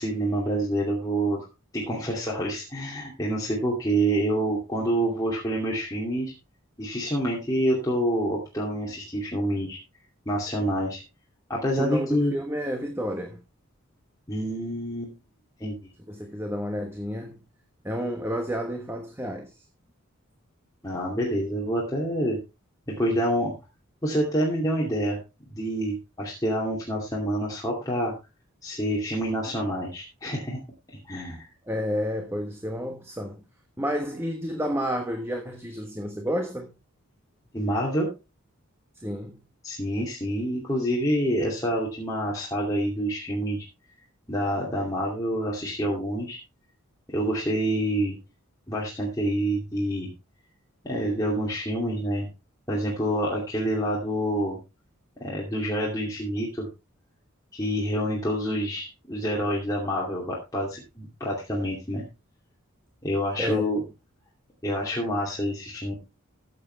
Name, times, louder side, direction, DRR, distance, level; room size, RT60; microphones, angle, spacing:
voice 1, 0.0-1.5 1.7-6.3 6.8-9.8 10.3-11.0 11.5-12.3 14.3-15.1 15.6-15.7 20.8-22.4 22.9-23.5 24.0-25.2 25.5-28.1 28.6-30.6 31.0-31.5 37.5-38.1 39.6-43.6 44.3-46.4 47.1-48.1 48.7-50.1 50.8-52.3 52.7-54.6 55.2-56.7 57.5-62.0 63.0-63.8 64.6-65.9, equal, 15° left, 2.6 m, -27 dB
voice 2, 11.8-13.4 16.1-17.4 17.8-19.6 31.6-33.4 33.8-36.7 38.9-39.4 63.4-63.6, equal, 10° right, 1.2 m, -30 dB
14.5 x 7.8 x 3.3 m
head